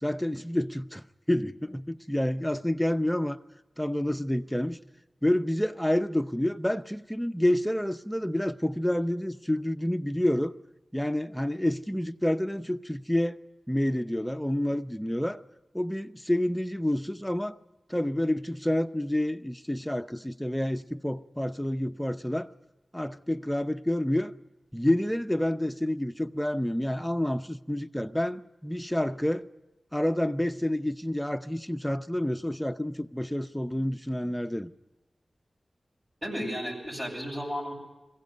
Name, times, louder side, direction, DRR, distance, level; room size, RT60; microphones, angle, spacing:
voice 1, 0.0-3.4 3.8-4.8 5.2-10.5 10.9-13.4 13.7-15.4 15.7-17.6 17.9-22.5 22.9-24.3 24.7-29.5 29.9-34.7, left 1 dB, 5° left, 0.6 m, -28 dB
voice 2, 36.2-37.7, equal, 30° right, 7.4 m, -33 dB
21.0 x 16.0 x 9.3 m
cardioid pair, 50°, 0 cm